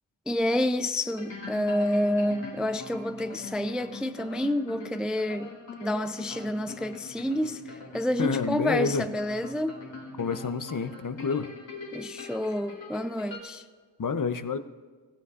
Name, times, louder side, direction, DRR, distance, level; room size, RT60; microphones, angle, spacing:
voice 1, 0.3-5.5 5.8-9.8 11.9-13.6, left 1 dB, ahead, 0.4 m, -29 dB
talking synth, 1.0-13.4, left 3 dB, 80° left, 3.2 m, -42 dB
voice 2, 8.2-9.0 10.2-11.5 14.0-14.6, left 5 dB, 45° left, 0.7 m, -28 dB
16.0 x 15.5 x 2.5 m
cardioid pair, 55°, 44 cm